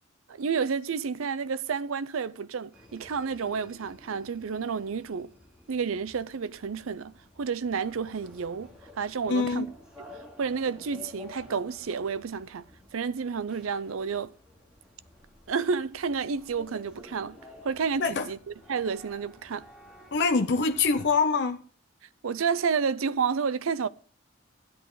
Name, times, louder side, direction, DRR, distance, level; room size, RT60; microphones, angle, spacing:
voice 1, 0.3-5.3 5.7-7.1 7.4-9.7 10.4-12.7 12.9-14.3 15.5-17.4 17.6-18.4 18.7-19.7 22.2-23.9, right 5 dB, 85° right, 0.5 m, -30 dB
sound 1, 2.7-21.1, left 2 dB, 5° right, 2.6 m, -52 dB
voice 2, 9.3-9.7 18.0-18.3 20.1-21.6, left 4 dB, 55° left, 0.6 m, -24 dB
13.0 x 10.0 x 3.9 m
head